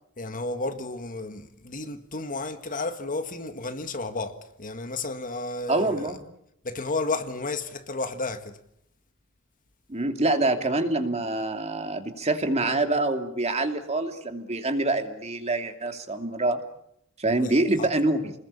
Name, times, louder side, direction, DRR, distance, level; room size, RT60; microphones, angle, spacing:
voice 1, 0.2-6.2 6.6-8.6 17.3-17.9, left 3 dB, 40° left, 1.8 m, -32 dB
voice 2, 5.7-6.2 9.9-16.6 17.2-18.3, right 2 dB, 30° right, 2.7 m, -25 dB
29.5 x 21.0 x 8.7 m
head